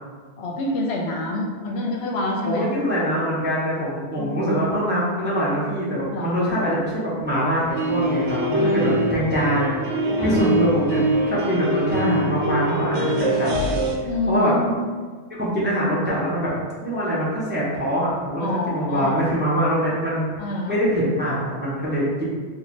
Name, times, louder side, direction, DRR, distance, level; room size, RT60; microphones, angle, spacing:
voice 1, 0.4-2.7 4.2-4.4 6.1-6.3 8.6-9.1 10.2-10.5 14.1-14.7 18.4-19.2 20.4-20.8, left 2 dB, 70° left, -1 dB, 0.8 m, -27 dB
voice 2, 2.5-13.5 14.3-14.6 15.3-20.3 20.7-22.2, equal, 15° right, -7 dB, 0.5 m, -23 dB
sound 1, 7.7-14.0, right 1 dB, 80° right, 0.9 m, -23 dB
3.0 x 2.3 x 4.1 m, 1.5 s
omnidirectional pair, 1.2 m